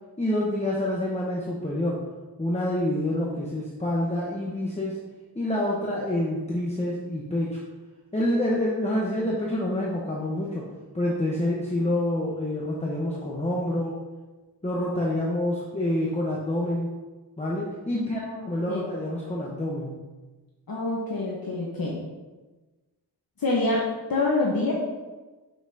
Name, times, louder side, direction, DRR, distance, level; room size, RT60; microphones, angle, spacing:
voice 1, 0.2-2.0 2.4-5.0 5.3-7.6 8.1-10.6 10.9-14.0 14.6-16.9 17.4-19.9, left 1 dB, 15° left, -4 dB, 1.0 m, -27 dB
voice 2, 17.9-18.9 20.7-22.0 23.4-23.8 24.1-24.7, left 2 dB, 60° left, -4 dB, 1.2 m, -27 dB
7.4 x 5.8 x 2.8 m, 1.2 s
wide cardioid pair, 85°, 40 cm